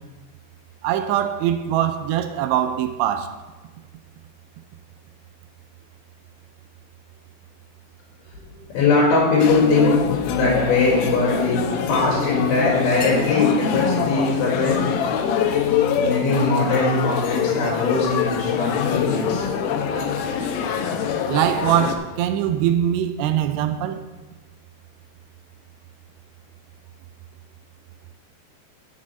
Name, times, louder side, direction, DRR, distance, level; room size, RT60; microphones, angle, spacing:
voice 1, 0.8-3.3 21.3-24.0, right 11 dB, 85° right, 2.5 m, -22 dB
voice 2, 8.7-11.6 11.9-14.9 15.9-19.5, left 3 dB, 65° left, 3.6 m, -20 dB
sound 1, 9.4-21.9, left 7 dB, 90° left, 2.1 m, -24 dB
7.3 x 6.2 x 7.6 m
omnidirectional pair, 5.2 m